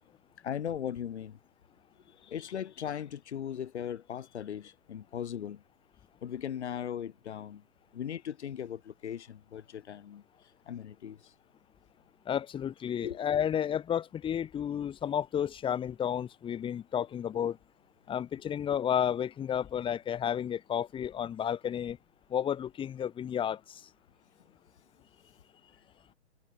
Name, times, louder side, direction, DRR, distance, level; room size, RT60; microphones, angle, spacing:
voice 1, 0.4-1.4 2.1-5.6 6.2-7.6 7.9-10.2 10.7-11.3 13.0-13.2 17.4-17.5, left 9 dB, 65° left, 6.0 m, -38 dB
voice 2, 12.3-17.6 18.1-22.0 22.3-23.8, left 9 dB, 15° left, 2.0 m, -32 dB
hypercardioid pair, 140°, 36 cm